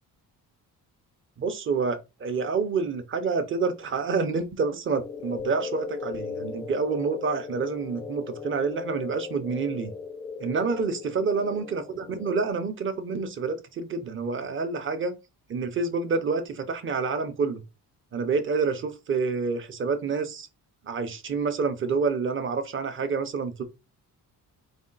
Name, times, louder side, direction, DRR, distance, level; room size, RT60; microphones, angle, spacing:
voice 1, 1.4-9.9 10.4-15.2 15.5-17.6 18.1-20.5 20.9-23.6, right 4 dB, 35° right, 0.6 m, -28 dB
sound 1, 4.9-12.5, left 5 dB, 20° left, 0.3 m, -37 dB
4.2 x 2.3 x 3.9 m
wide cardioid pair, 165°, 35 cm